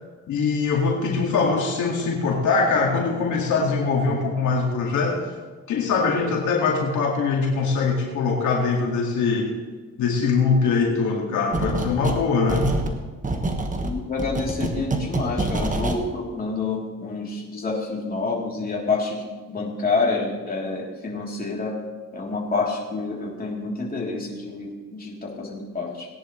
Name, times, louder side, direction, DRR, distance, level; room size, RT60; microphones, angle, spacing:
voice 1, 0.3-5.3 5.7-9.5 10.0-12.7, left 4 dB, 75° left, -1 dB, 2.1 m, -22 dB
sound 1, 11.5-12.2 12.5-16.0, right 2 dB, 25° right, 1.5 m, -26 dB
voice 2, 13.8-21.7 22.1-26.1, left 3 dB, 30° left, -3 dB, 3.3 m, -28 dB
18.5 x 10.5 x 3.2 m, 1.4 s
cardioid pair, 90°, 30 cm